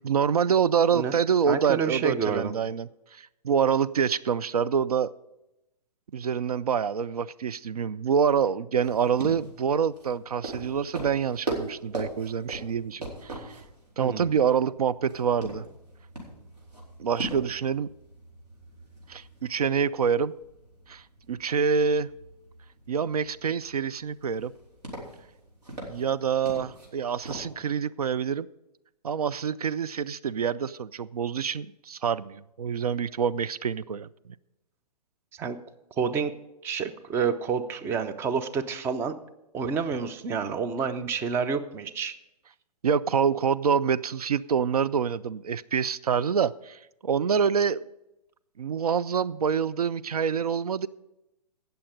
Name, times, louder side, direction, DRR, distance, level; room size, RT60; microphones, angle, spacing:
voice 1, 0.0-5.1 6.1-13.6 14.0-15.6 17.0-17.9 19.1-20.3 20.9-22.1 22.9-24.5 25.9-28.5 29.0-34.1 42.8-47.8 48.6-50.9, right 7 dB, 65° right, 0.4 m, -26 dB
voice 2, 1.5-2.5 14.0-14.3 35.3-35.6 36.0-36.3 36.6-39.2 39.5-42.1, right 6 dB, 10° right, 0.5 m, -29 dB
sound 1, 8.8-27.5, right 2 dB, 85° right, 4.2 m, -41 dB
17.0 x 6.9 x 5.1 m
figure-of-eight pair, 120°, 21 cm